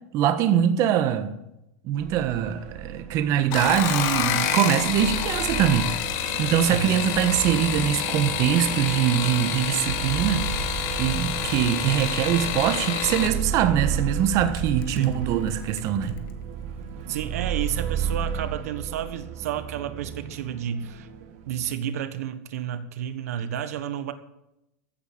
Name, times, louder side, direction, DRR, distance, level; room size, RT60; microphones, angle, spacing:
voice 1, 0.1-1.4 1.8-5.9 6.2-10.5 11.0-16.1, right 10 dB, 45° right, 1.4 m, -23 dB
sound 1, 2.0-21.7, right 7 dB, 60° right, 2.2 m, -34 dB
sound 2, 3.4-13.4 14.6-15.1 15.5-15.9 16.2-16.3, left 9 dB, 50° left, 2.0 m, -28 dB
voice 2, 6.6-7.0 15.0-15.2 17.1-21.1 21.5-24.1, right 10 dB, 80° right, 1.4 m, -31 dB
15.5 x 8.5 x 8.7 m
supercardioid pair, 145°, 8 cm